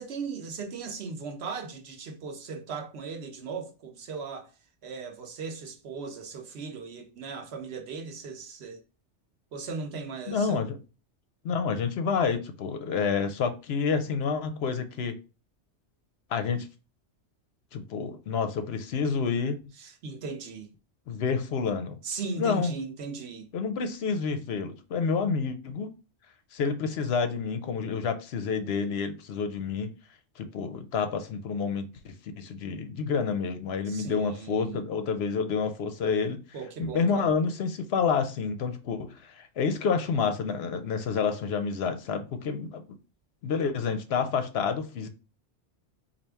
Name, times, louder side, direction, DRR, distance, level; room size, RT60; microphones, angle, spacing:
voice 1, 0.0-4.5 4.8-8.8 9.5-10.6 19.8-20.7 22.0-23.5 33.9-34.8 36.5-37.3, right 4 dB, 65° right, 1.0 m, -37 dB
voice 2, 10.3-10.8 11.4-15.2 16.3-16.7 17.7-19.6 21.1-22.0 22.4-22.7 23.5-25.9 26.5-29.9 30.4-36.4 36.8-42.8 43.4-45.1, left 5 dB, 65° left, 0.8 m, -29 dB
4.2 x 2.5 x 3.3 m
omnidirectional pair, 1.2 m